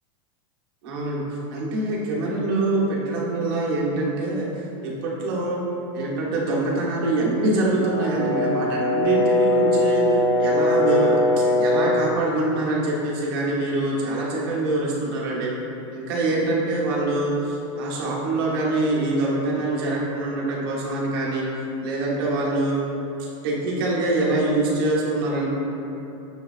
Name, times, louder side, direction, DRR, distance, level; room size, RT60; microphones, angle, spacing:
voice 1, 0.8-1.2 1.5-4.5 4.8-5.6 5.9-10.0 10.4-15.5 15.9-21.5 21.8-22.8 23.2-25.5, right 2 dB, 45° right, -5 dB, 0.9 m, -24 dB
Brass instrument, 7.8-12.1, left 1 dB, 35° left, 0.7 m, -21 dB
6.6 x 2.2 x 2.4 m, 2.9 s
supercardioid pair, 180°, 16 cm